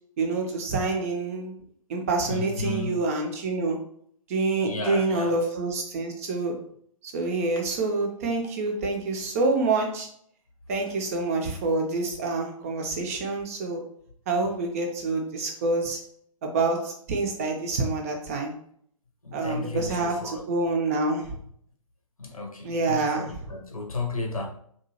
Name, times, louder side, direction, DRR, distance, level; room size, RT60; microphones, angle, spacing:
voice 1, 0.2-1.5 1.9-3.8 4.3-6.5 7.1-10.1 10.7-13.8 14.3-16.0 16.4-18.5 19.3-21.2 22.6-23.2, right 3 dB, 25° right, 2 dB, 0.4 m, -27 dB
voice 2, 2.2-2.9 4.6-5.4 19.2-20.4 22.2-24.5, left 3 dB, 75° left, 3 dB, 0.7 m, -33 dB
2.8 x 2.2 x 2.8 m, 0.64 s
figure-of-eight pair, 130°, 18 cm